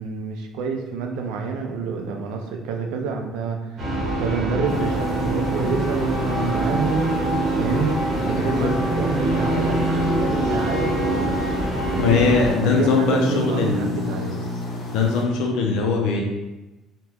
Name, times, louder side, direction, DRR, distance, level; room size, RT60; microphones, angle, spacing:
voice 1, 0.0-7.1 7.6-11.4 11.9-12.3 12.6-14.4, right 4 dB, 90° right, 3 dB, 0.4 m, -28 dB
sound 1, 3.8-12.5, right 1 dB, 30° right, 0.8 m, -24 dB
sound 2, 4.7-15.2, left 1 dB, 50° left, 0.7 m, -30 dB
voice 2, 12.0-13.8 14.9-16.2, left 4 dB, 85° left, 1 dB, 0.4 m, -20 dB
2.9 x 2.1 x 3.4 m, 1.0 s
cardioid pair, 150°, 0 cm